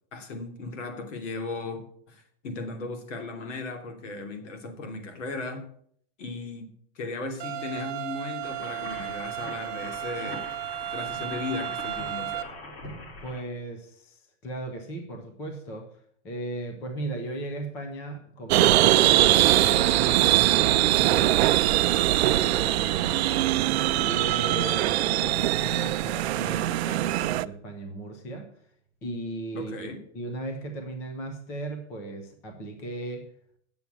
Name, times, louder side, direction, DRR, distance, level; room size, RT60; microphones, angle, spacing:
voice 1, 0.1-1.8 2.1-5.7 6.2-6.7 6.9-10.6 10.9-12.5 29.5-30.0, left 3 dB, 75° left, 5 dB, 3.0 m, -36 dB
sound 1, 7.4-12.4, right 13 dB, 40° right, 1.1 m, -34 dB
sound 2, 8.4-13.4, left 2 dB, 50° left, 4.9 m, -42 dB
voice 2, 13.2-15.9 16.2-21.5 22.2-28.5 29.0-29.9 30.1-33.3, right 1 dB, 10° left, 5 dB, 0.3 m, -37 dB
sound 3, 18.5-27.5, right 15 dB, 60° right, 0.5 m, -22 dB
9.2 x 7.1 x 8.1 m, 0.63 s
supercardioid pair, 175°, 37 cm